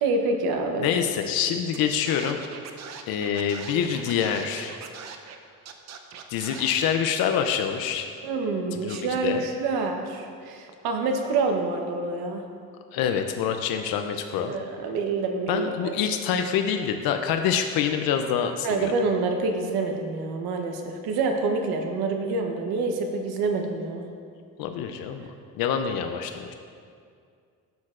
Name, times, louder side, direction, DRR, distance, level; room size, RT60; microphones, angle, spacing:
voice 1, 0.0-0.9 8.2-12.4 14.5-15.9 18.6-24.1, right 3 dB, 80° right, 4 dB, 1.0 m, -27 dB
voice 2, 0.8-2.4 3.1-4.7 6.3-8.1 8.7-9.4 12.9-14.5 15.5-18.9 24.6-25.2 25.6-26.5, left 8 dB, 75° left, 6 dB, 0.5 m, -26 dB
Scratching (performance technique), 1.7-1.8 2.0-5.4 5.6-6.9, right 7 dB, 45° right, 0.6 m, -41 dB
12.0 x 6.5 x 2.5 m, 2.3 s
cardioid pair, 135°, 37 cm